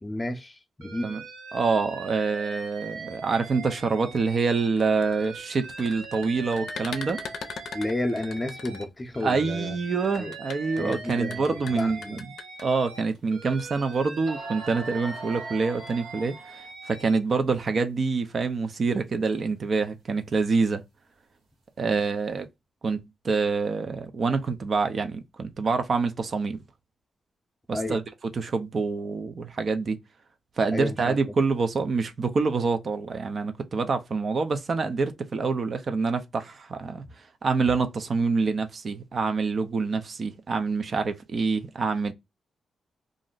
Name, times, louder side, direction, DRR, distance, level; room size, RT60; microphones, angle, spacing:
voice 1, 0.0-1.1 7.7-9.8 10.2-10.3 10.8-12.2 27.7-28.0 30.7-31.2, left 1 dB, 20° left, 0.6 m, -31 dB
Alarm, 0.8-4.7 5.0-8.8 9.1-13.0 13.3-17.2, right 4 dB, 70° right, 0.8 m, -41 dB
voice 2, 1.5-7.2 9.2-12.3 12.6-20.8 21.8-22.5 22.8-26.6 27.7-30.0 30.6-37.0 37.4-42.1, right 4 dB, 50° right, 0.5 m, -26 dB
sound 1, 4.6-9.3 10.0-12.6, left 6 dB, 75° left, 0.5 m, -40 dB
sound 2, 13.1-13.2 13.9-14.0 14.3-16.7, right 2 dB, 85° right, 1.1 m, -41 dB
2.5 x 2.0 x 3.7 m
cardioid pair, 90°, 0 cm